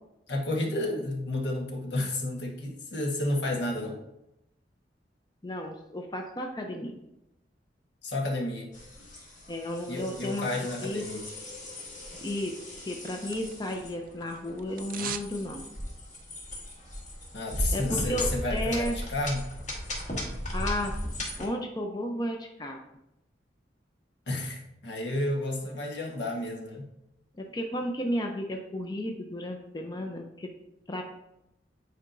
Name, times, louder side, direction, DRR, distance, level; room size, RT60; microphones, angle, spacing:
voice 1, 0.3-4.0 8.0-8.7 9.9-11.2 17.3-19.5 24.3-26.9, left 1 dB, 70° left, 0 dB, 1.3 m, -31 dB
voice 2, 5.4-7.0 9.5-10.5 10.8-11.0 12.2-15.6 17.7-19.0 20.5-21.1 21.4-22.8 27.3-30.5 30.9-31.0, left 1 dB, 25° left, 2 dB, 0.5 m, -33 dB
sound 1, 8.7-21.5, equal, 45° left, 1.6 m, -37 dB
sound 2, 12.6-13.8 14.1-15.4 15.7-15.8, right 9 dB, 50° right, 0.3 m, -40 dB
9.3 x 4.6 x 2.6 m, 0.86 s
head